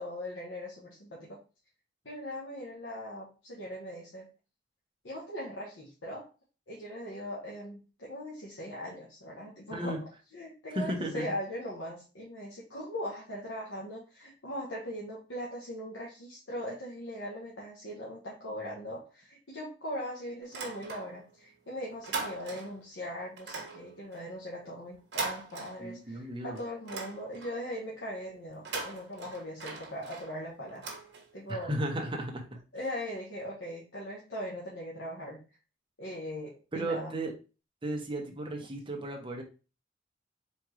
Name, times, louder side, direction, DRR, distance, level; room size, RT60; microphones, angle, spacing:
voice 1, 0.0-1.4 2.0-4.3 5.0-6.3 6.7-10.0 10.3-30.8 31.3-31.7 32.7-35.4 36.0-37.1, equal, 75° left, -5 dB, 1.3 m, -40 dB
voice 2, 9.7-10.0 10.7-11.3 25.8-26.6 31.5-32.6 36.7-37.3 37.8-39.4, right 1 dB, 25° right, 2 dB, 1.0 m, -34 dB
sound 1, 20.4-21.4 21.7-22.9 23.4-26.2 26.6-27.7 28.5-31.6, right 4 dB, 65° right, 1.3 m, -40 dB
4.4 x 3.7 x 3.1 m, 0.32 s
head